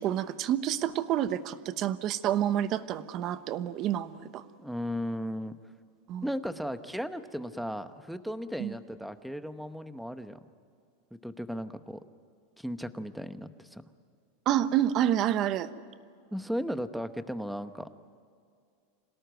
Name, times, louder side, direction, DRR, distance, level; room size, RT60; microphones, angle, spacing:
voice 1, 0.0-4.4 6.1-6.2 8.6-8.7 14.5-15.7, right 11 dB, 35° right, 13 dB, 1.0 m, -28 dB
voice 2, 4.6-5.5 6.2-10.4 11.2-12.0 12.6-13.8 16.3-17.9, equal, ahead, 10 dB, 0.9 m, -36 dB
26.5 x 18.0 x 9.2 m, 2.3 s
supercardioid pair, 155°, 0 cm